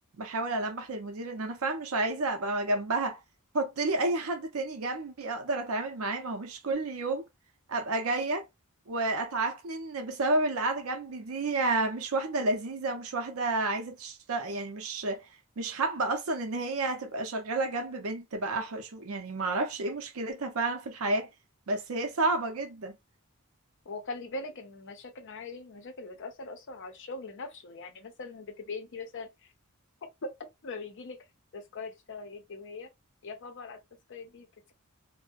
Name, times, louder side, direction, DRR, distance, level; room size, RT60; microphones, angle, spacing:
voice 1, 0.2-3.2 3.5-7.3 7.7-8.5 8.9-15.3 15.6-21.3 21.7-23.0, right 2 dB, 75° right, 0.6 m, -30 dB
voice 2, 23.9-29.5 30.2-30.3 30.6-31.2 31.5-32.9 33.2-33.8 34.1-34.7, left 3 dB, 60° left, 0.6 m, -41 dB
2.6 x 2.1 x 2.4 m
head